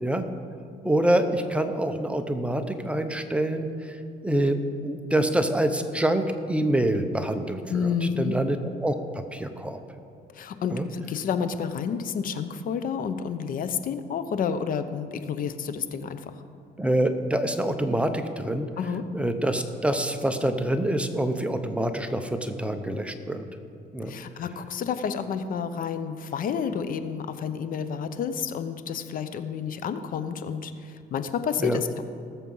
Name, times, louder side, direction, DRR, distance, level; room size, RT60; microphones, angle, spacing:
voice 1, 0.8-4.0 4.2-4.6 4.8-7.9 8.2-8.9 9.3-9.8 10.7-10.9 16.8-18.7 19.1-23.5 23.9-24.1 31.6-31.8, right 1 dB, 5° right, 7 dB, 0.8 m, -26 dB
voice 2, 7.7-8.4 10.3-16.3 18.8-19.1 24.1-32.0, left 7 dB, 55° left, 11 dB, 0.8 m, -30 dB
18.5 x 7.3 x 5.5 m, 2.6 s
cardioid pair, 110°, 17 cm